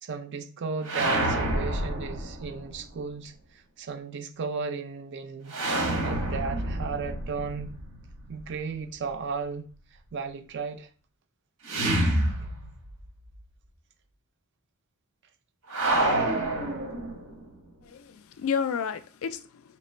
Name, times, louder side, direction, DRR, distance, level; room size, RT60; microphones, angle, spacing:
voice 1, 0.0-5.6 6.0-7.8 8.3-9.7 9.9-10.9 12.4-12.5, right 5 dB, 50° right, 0.4 m, -35 dB
sound 1, 0.8-2.8 5.5-8.5 11.6-13.1 13.3-13.4 15.7-17.5, right 1 dB, 85° right, 1.2 m, -28 dB
voice 2, 17.8-19.8, left 6 dB, 65° left, 0.3 m, -31 dB
3.1 x 3.0 x 4.3 m
head